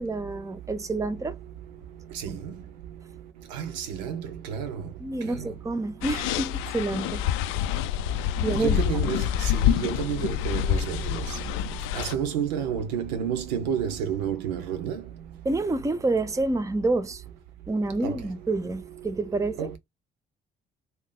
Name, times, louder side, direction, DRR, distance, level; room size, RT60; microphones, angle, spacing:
voice 1, 0.0-1.4 2.3-2.4 5.0-7.3 8.4-8.8 15.4-17.2 17.7-19.7, right 2 dB, 15° right, 0.6 m, -28 dB
voice 2, 2.1-2.6 3.5-4.8 5.3-5.5 8.6-11.3 12.0-15.0 18.0-18.2 19.6-19.7, right 8 dB, 90° right, 0.7 m, -30 dB
sound 1, 6.0-12.1, left 11 dB, 75° left, 0.4 m, -27 dB
2.8 x 2.5 x 3.7 m
hypercardioid pair, 55°, 21 cm